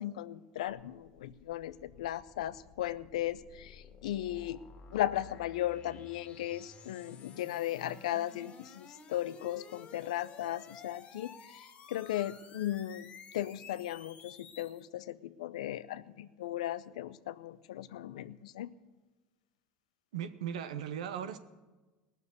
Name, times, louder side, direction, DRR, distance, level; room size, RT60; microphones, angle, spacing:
voice 1, 0.0-4.6 4.9-13.1 13.3-18.7, left 13 dB, 90° left, 14 dB, 0.6 m, -36 dB
sound 1, 0.7-14.8, left 6 dB, 35° left, 2.1 m, -53 dB
voice 2, 20.1-21.4, right 9 dB, 90° right, 11 dB, 0.9 m, -37 dB
18.5 x 6.9 x 8.2 m, 1.2 s
supercardioid pair, 100°, 4 cm